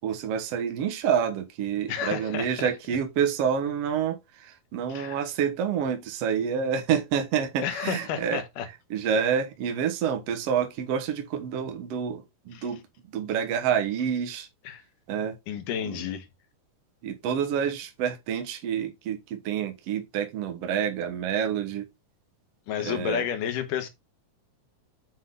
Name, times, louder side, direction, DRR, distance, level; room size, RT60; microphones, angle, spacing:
voice 1, 0.0-8.4 8.9-12.8 13.1-14.5 15.1-15.4 15.8-16.1 17.0-21.9 22.8-23.2, right 8 dB, 60° right, 1.8 m, -28 dB
voice 2, 1.9-2.7 4.9-5.2 7.6-8.7 12.6-12.7 14.7-14.8 15.5-16.3 22.7-23.9, left 9 dB, 75° left, 2.5 m, -31 dB
7.6 x 3.7 x 3.8 m
omnidirectional pair, 3.9 m